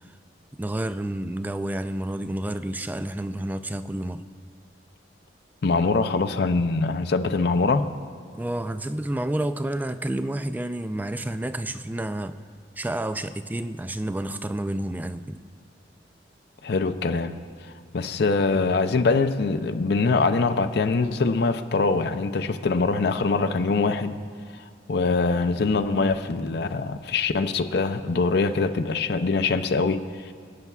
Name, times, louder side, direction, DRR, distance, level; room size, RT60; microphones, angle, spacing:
voice 1, 0.5-4.2 8.3-12.4 12.8-15.4, right 1 dB, 10° right, 0.3 m, -30 dB
voice 2, 5.6-7.9 16.6-24.2 24.9-30.3, left 3 dB, 60° left, 0.5 m, -23 dB
27.0 x 9.4 x 2.4 m
head